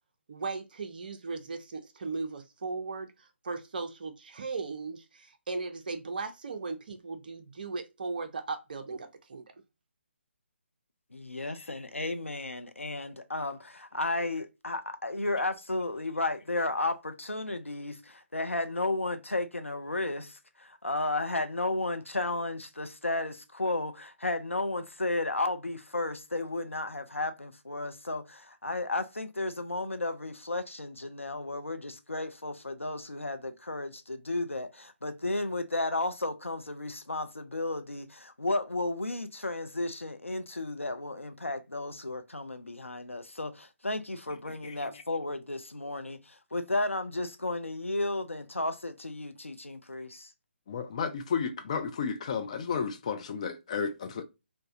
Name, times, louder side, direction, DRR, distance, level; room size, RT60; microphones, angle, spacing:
voice 1, 0.3-9.4, right 4 dB, 45° right, 0.5 m, -37 dB
voice 2, 11.1-50.3, left 2 dB, 85° left, 0.5 m, -33 dB
voice 3, 50.7-54.2, left 6 dB, 30° left, 0.4 m, -32 dB
3.3 x 2.1 x 2.5 m
figure-of-eight pair, 145°, 7 cm